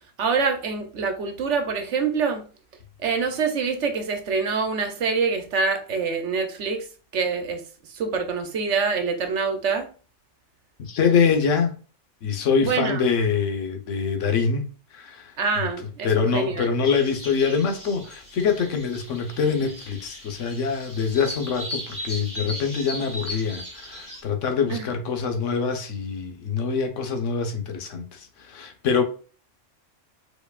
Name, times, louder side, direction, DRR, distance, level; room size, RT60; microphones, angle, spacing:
voice 1, 0.2-2.4 3.0-6.9 7.1-7.6 7.9-9.9 12.6-13.1 15.4-16.7 24.7-24.9, right 5 dB, 70° right, 1.1 m, -25 dB
voice 2, 10.8-11.8 12.2-15.7 16.0-29.0, left 6 dB, 75° left, 1.2 m, -25 dB
sound 1, 16.8-24.2, equal, 15° left, 1.5 m, -37 dB
4.6 x 4.5 x 2.3 m
omnidirectional pair, 1.3 m